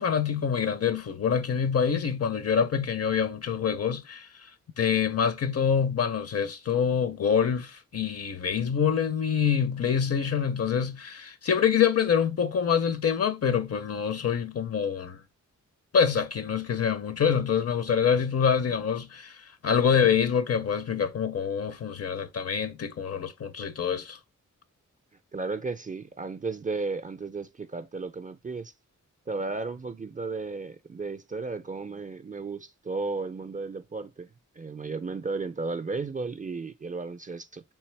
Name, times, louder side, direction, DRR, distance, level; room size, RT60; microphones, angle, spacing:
voice 1, 0.0-4.3 4.8-15.2 15.9-24.2, left 7 dB, 50° left, 0.6 m, -26 dB
voice 2, 25.3-28.7 29.3-34.3 34.6-37.6, right 3 dB, 25° right, 0.4 m, -34 dB
3.3 x 2.8 x 3.2 m
cardioid pair, 50°, 31 cm